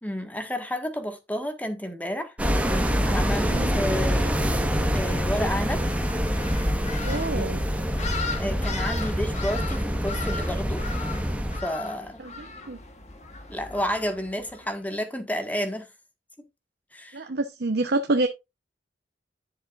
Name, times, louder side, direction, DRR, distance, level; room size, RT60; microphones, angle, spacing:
voice 1, 0.0-2.7 3.0-4.5 4.9-5.8 7.1-7.5 8.4-10.8 11.6-12.2 13.5-15.9 16.9-17.2, equal, 10° left, 1.6 m, -31 dB
sound 1, 2.4-11.6, equal, 10° right, 1.3 m, -25 dB
sound 2, 5.7-14.8, left 4 dB, 40° left, 1.9 m, -38 dB
voice 2, 7.0-7.6 12.2-12.8 17.1-18.3, right 2 dB, 65° right, 0.9 m, -27 dB
10.5 x 7.2 x 2.5 m
head